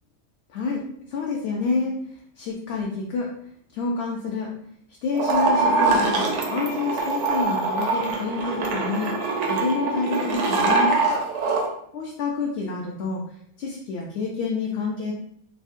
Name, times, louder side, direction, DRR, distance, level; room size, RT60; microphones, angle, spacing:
voice 1, 0.5-0.8 1.1-2.0 2.4-3.3 3.7-4.5 5.0-9.1 9.5-10.9 11.9-13.2 13.6-15.1, left 4 dB, 65° left, -2 dB, 0.8 m, -28 dB
sound 1, 5.1-11.7, right 3 dB, 80° right, 0.9 m, -23 dB
3.5 x 2.1 x 2.5 m, 0.68 s
omnidirectional pair, 1.2 m